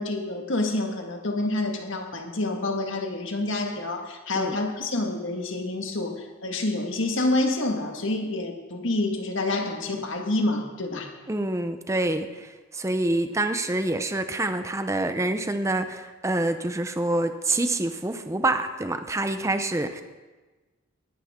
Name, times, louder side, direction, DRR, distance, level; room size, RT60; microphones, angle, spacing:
voice 1, 0.0-11.1, left 2 dB, 60° left, 3 dB, 1.7 m, -28 dB
voice 2, 11.3-12.3 12.7-20.0, right 2 dB, 15° right, 8 dB, 0.6 m, -26 dB
19.0 x 10.5 x 3.7 m, 1.3 s
head